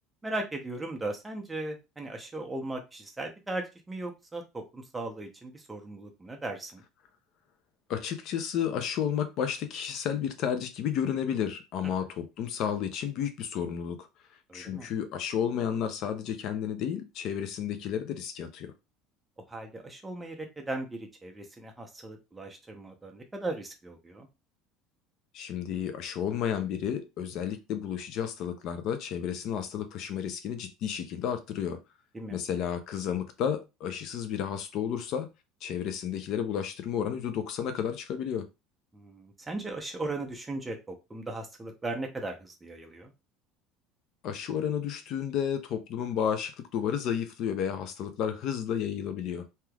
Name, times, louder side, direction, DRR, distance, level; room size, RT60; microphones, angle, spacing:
voice 1, 0.2-6.8 11.8-11.9 14.5-14.9 19.5-24.3 32.1-32.4 38.9-43.1, right 2 dB, 10° right, 0.7 m, -37 dB
voice 2, 7.9-14.0 14.5-18.7 25.3-31.8 32.3-35.3 35.6-38.5 44.2-49.5, left 8 dB, 55° left, 0.5 m, -32 dB
3.3 x 2.8 x 2.3 m
cardioid pair, 140°, 0 cm